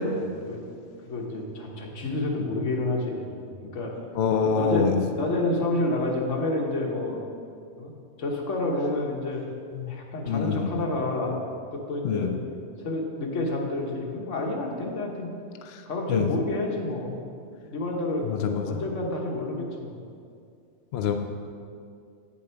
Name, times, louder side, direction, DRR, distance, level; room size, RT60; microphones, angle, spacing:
voice 1, 0.1-0.6 1.1-3.9 4.5-7.2 7.8-7.9 8.2-9.4 9.9-11.4 11.7-12.3 12.8-15.3 15.9-17.2 17.6-18.2 18.6-19.9, left 2 dB, 90° left, 0 dB, 1.4 m, -29 dB
voice 2, 4.2-5.0 9.8-9.9 10.3-10.6 12.0-12.3 16.1-16.3 18.3-18.7 20.9-21.1, left 6 dB, 65° left, 5 dB, 0.8 m, -25 dB
8.0 x 7.1 x 4.5 m, 2.4 s
omnidirectional pair, 1.2 m